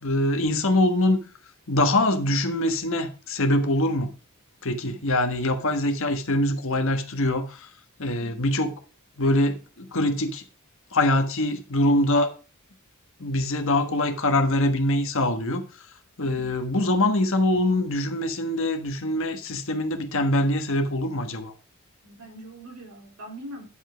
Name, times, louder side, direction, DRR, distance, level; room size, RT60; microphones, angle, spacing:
voice 1, 0.0-1.2 1.7-4.1 4.6-7.7 8.0-8.8 9.2-10.4 10.9-12.3 13.2-15.6 16.2-21.5, left 1 dB, 65° left, 1.4 m, -23 dB
voice 2, 8.1-8.4 16.2-16.5 22.0-23.7, right 1 dB, 70° right, 3.4 m, -42 dB
10.0 x 5.4 x 5.1 m
head